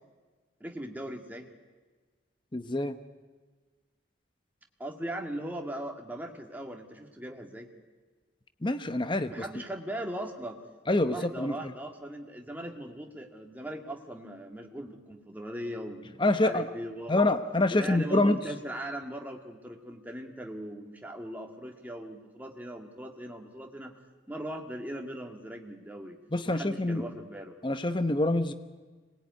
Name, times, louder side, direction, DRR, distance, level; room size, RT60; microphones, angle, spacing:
voice 1, 0.6-1.5 4.8-7.7 9.3-10.6 11.1-17.3 17.7-23.9 24.3-26.2 26.4-27.6, right 1 dB, 10° right, 2 dB, 2.1 m, -39 dB
voice 2, 2.5-2.9 8.6-9.4 10.9-11.7 16.2-16.7 17.1-18.4 26.3-27.0 27.6-28.5, left 2 dB, 25° left, 10 dB, 0.9 m, -26 dB
25.5 x 20.0 x 9.5 m, 1.4 s
head